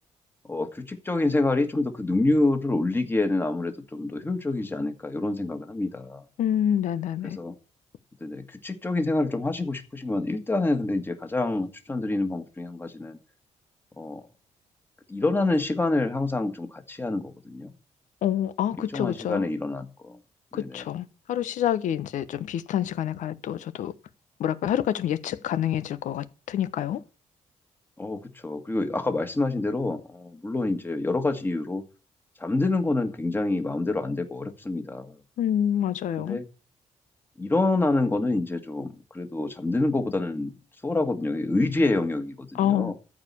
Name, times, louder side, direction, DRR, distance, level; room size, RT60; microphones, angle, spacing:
voice 1, 0.5-6.2 7.2-7.6 8.2-13.2 14.0-14.2 15.1-17.7 18.9-20.2 20.5-20.9 28.0-31.8 32.4-35.2 36.2-36.5 37.4-40.5 40.8-42.9, left 2 dB, 15° left, 1.8 m, -27 dB
voice 2, 6.4-7.4 18.2-19.4 20.5-23.9 24.4-27.0 35.4-36.4 42.6-42.9, left 10 dB, 85° left, 1.0 m, -27 dB
14.0 x 5.0 x 8.5 m
cardioid pair, 130°, 12 cm